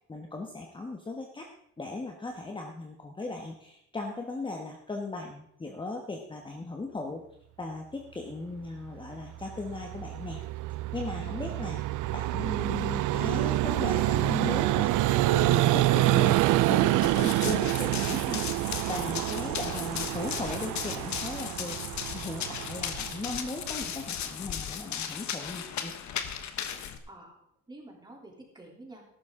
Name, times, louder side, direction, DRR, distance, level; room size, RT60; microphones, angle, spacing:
voice 1, 0.1-1.5 1.8-7.3 7.6-10.4 10.9-11.8 12.1-25.9, left 2 dB, 15° left, 1 dB, 1.3 m, -38 dB
Vehicle, 9.4-24.0, right 16 dB, 85° right, 0.5 m, -27 dB
Run, 17.0-27.0, left 9 dB, 70° left, 1.2 m, -36 dB
voice 2, 27.1-27.4 27.7-29.0, right 2 dB, 15° right, -1 dB, 3.2 m, -49 dB
14.0 x 11.5 x 3.7 m, 0.74 s
cardioid pair, 140°, 30 cm